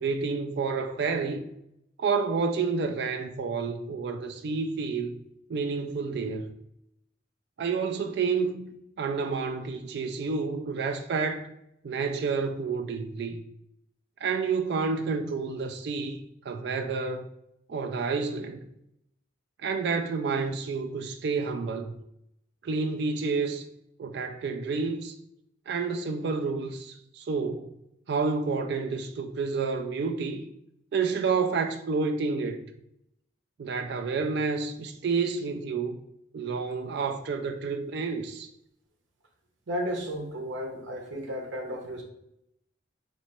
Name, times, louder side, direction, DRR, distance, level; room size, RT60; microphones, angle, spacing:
voice 1, 0.0-1.5 2.0-5.2 5.5-6.5 7.6-11.5 11.8-13.4 14.2-17.3 17.7-18.6 19.6-21.9 22.6-23.6 24.0-25.1 25.7-27.7 28.1-30.5 30.9-32.7 33.6-36.0 36.3-38.5, right 4 dB, 60° right, 0.3 m, -29 dB
voice 2, 39.7-42.0, equal, 75° right, 0.9 m, -33 dB
3.2 x 3.0 x 4.3 m
head